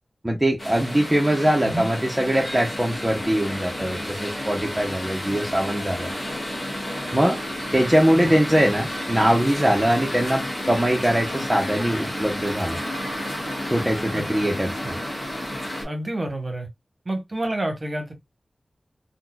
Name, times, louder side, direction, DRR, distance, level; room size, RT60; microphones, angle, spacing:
voice 1, 0.2-6.1 7.1-7.4 7.7-12.8 13.7-14.9, equal, 10° right, 0.6 m, -22 dB
sound 1, 0.6-15.8, equal, 25° left, 1.8 m, -31 dB
voice 2, 14.1-14.5 15.8-16.7 17.0-18.1, right 1 dB, 30° right, 1.0 m, -29 dB
4.2 x 2.1 x 2.2 m
wide cardioid pair, 90°, 0 cm